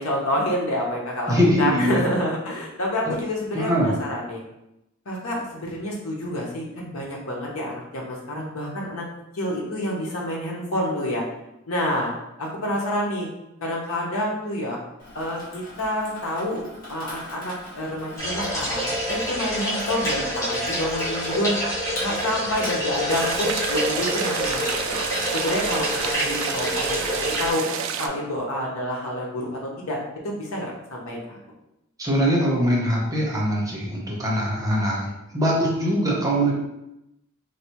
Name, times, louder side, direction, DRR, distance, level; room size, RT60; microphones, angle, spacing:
voice 1, 0.0-4.4 5.1-9.0 9.3-11.2 11.7-12.1 12.4-13.3 13.6-14.8 15.1-21.5 22.0-24.9 25.3-27.0 27.4-27.7 27.9-30.0 30.2-31.4, left 1 dB, 75° left, -2 dB, 0.9 m, -28 dB
voice 2, 1.3-2.1 3.0-3.1 3.5-3.9 32.0-36.5, equal, 15° right, -4 dB, 0.7 m, -22 dB
Water tap faucet / Sink (filling or washing), 15.0-26.1, left 1 dB, 40° left, 1.4 m, -41 dB
sound 1, 18.2-27.5, equal, 15° left, 0.9 m, -27 dB
sound 2, 23.1-28.1, right 7 dB, 65° right, 0.3 m, -29 dB
3.3 x 2.7 x 2.9 m, 0.87 s
head